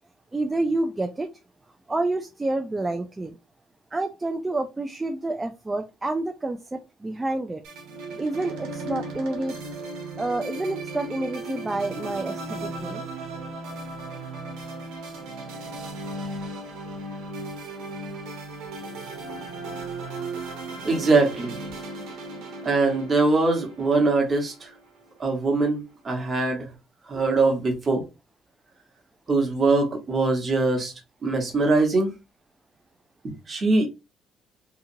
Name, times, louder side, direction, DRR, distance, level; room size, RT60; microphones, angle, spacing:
voice 1, 0.3-1.3 1.9-3.3 3.9-7.6 8.2-9.5 10.2-13.0 18.7-18.9, right 2 dB, 15° right, 0.3 m, -28 dB
sound 1, 7.6-25.0, right 2 dB, 85° right, 1.0 m, -36 dB
voice 2, 20.8-21.5 22.6-24.5 25.2-26.7 27.1-28.0 29.3-30.9 31.2-32.1 33.2-33.9, right 3 dB, 35° right, 1.2 m, -22 dB
2.9 x 2.4 x 2.7 m
cardioid pair, 105°, 0 cm